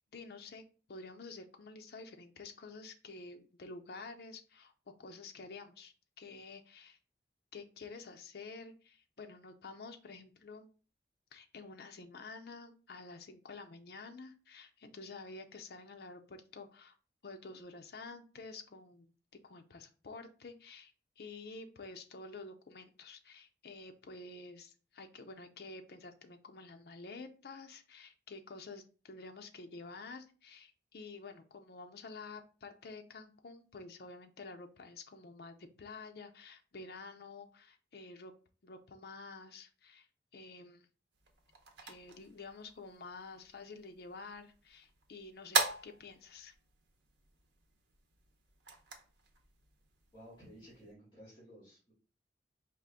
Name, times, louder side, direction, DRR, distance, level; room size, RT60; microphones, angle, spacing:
voice 1, 0.1-4.7 5.0-7.0 7.5-10.7 11.3-16.9 17.2-19.1 19.4-38.3 38.6-40.1 40.3-40.9 41.8-46.5, left 3 dB, 60° left, 5 dB, 0.5 m, -50 dB
sound 1, 41.1-50.9, right 4 dB, 90° right, 0.8 m, -42 dB
voice 2, 50.1-51.9, equal, 30° left, -7 dB, 1.9 m, -55 dB
4.9 x 2.4 x 3.5 m, 0.37 s
head